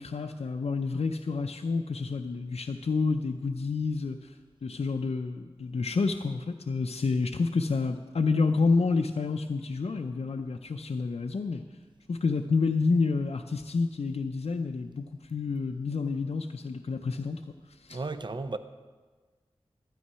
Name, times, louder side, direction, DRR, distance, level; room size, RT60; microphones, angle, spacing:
voice 1, 0.0-4.3 4.6-11.6 12.1-17.4 17.8-18.0, left 4 dB, 75° left, 0.5 m, -29 dB
voice 2, 17.9-18.6, right 3 dB, 45° right, 0.6 m, -34 dB
12.5 x 9.1 x 5.6 m
wide cardioid pair, 55°, 11 cm